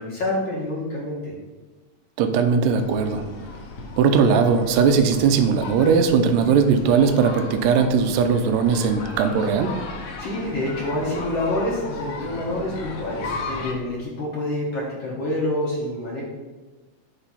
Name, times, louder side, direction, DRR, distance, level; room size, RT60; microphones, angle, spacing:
voice 1, 0.0-1.3 10.2-16.2, left 1 dB, 55° left, -6 dB, 1.4 m, -27 dB
voice 2, 2.2-3.2 4.0-9.8, right 6 dB, 80° right, 6 dB, 1.6 m, -19 dB
sound 1, 2.8-13.7, left 3 dB, 75° left, 1.4 m, -36 dB
6.1 x 3.2 x 5.6 m, 1.2 s
omnidirectional pair, 3.7 m